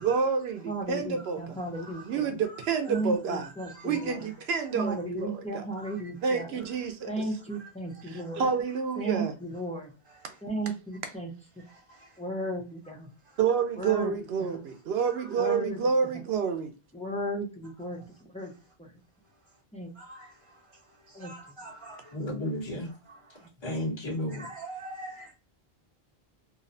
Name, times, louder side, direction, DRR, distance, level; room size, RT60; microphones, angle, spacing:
voice 1, 0.0-1.6 2.1-3.5 3.8-5.6 6.2-7.2 8.1-9.3 13.4-16.7, right 6 dB, 85° right, 0.8 m, -29 dB
voice 2, 0.7-2.3 2.9-4.3 4.7-6.5 7.1-8.5 9.0-9.9 10.4-11.3 12.2-13.1 13.8-14.1 14.4-14.5 15.4-15.8 16.9-18.0 18.3-18.5 18.8-18.9 19.7-19.9 21.1-21.3, right 1 dB, 10° left, 0.3 m, -34 dB
voice 3, 1.7-3.0 3.3-4.1 4.5-4.6 5.7-6.1 7.5-7.6 7.9-8.4 10.0-10.4 11.6-12.2 13.2-13.4 15.0-15.4 17.9-18.0 18.4-18.7 19.4-19.5 19.9-22.2 23.1-23.5 24.3-25.3, right 2 dB, 30° right, 0.6 m, -47 dB
voice 4, 22.1-22.9 23.6-24.5, left 1 dB, 25° left, 1.0 m, -32 dB
2.6 x 2.0 x 2.4 m
omnidirectional pair, 1.0 m